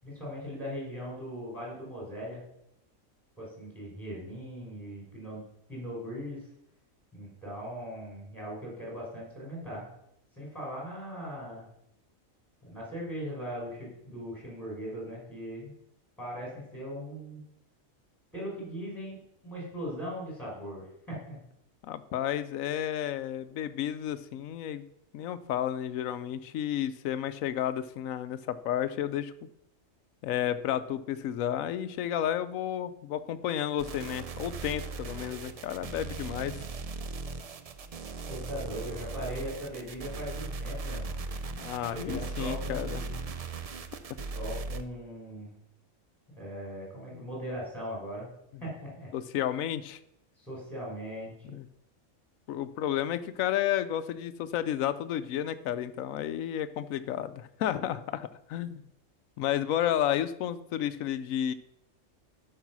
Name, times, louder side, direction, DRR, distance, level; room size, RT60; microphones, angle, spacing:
voice 1, 0.0-2.4 3.4-5.4 5.7-6.5 7.1-9.9 10.3-11.7 12.6-15.7 16.2-17.4 18.3-21.4 38.3-41.2 41.9-43.2 44.3-45.6 46.4-48.3 48.6-49.1 50.4-51.6, equal, ahead, -4 dB, 4.7 m, -39 dB
voice 2, 21.8-24.8 25.1-29.3 30.2-36.6 41.5-43.0 47.1-47.2 49.1-50.0 51.5-51.6 52.5-58.9 59.4-61.5, left 11 dB, 85° left, 12 dB, 1.0 m, -32 dB
sound 1, 33.8-44.8, right 3 dB, 55° right, 0.4 m, -38 dB
12.0 x 5.6 x 6.0 m, 0.79 s
omnidirectional pair, 1.4 m